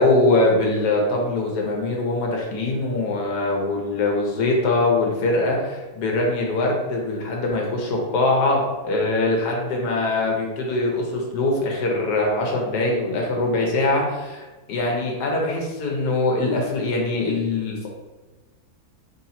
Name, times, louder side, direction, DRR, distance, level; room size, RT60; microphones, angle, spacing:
voice 1, 0.0-17.9, left 2 dB, 85° left, -1 dB, 1.4 m, -22 dB
3.4 x 2.8 x 4.1 m, 1.2 s
omnidirectional pair, 1.7 m